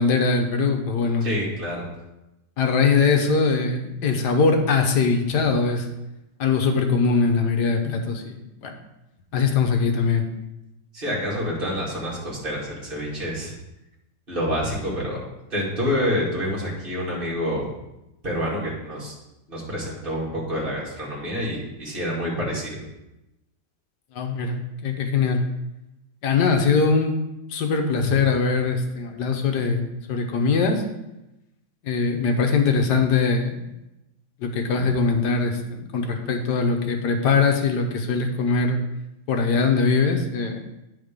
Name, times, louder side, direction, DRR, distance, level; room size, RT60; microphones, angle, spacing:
voice 1, 0.0-1.3 2.6-5.9 6.4-8.7 9.3-10.3 24.1-25.4 26.2-27.1 27.5-30.8 31.8-33.7 34.4-38.8 39.3-40.6, left 4 dB, 75° left, 4 dB, 1.5 m, -22 dB
voice 2, 1.2-1.8 10.9-13.5 14.3-15.2 15.5-17.7 18.2-19.1 19.5-22.8, equal, 30° right, -6 dB, 2.6 m, -27 dB
9.7 x 4.2 x 5.1 m, 0.93 s
omnidirectional pair, 1.8 m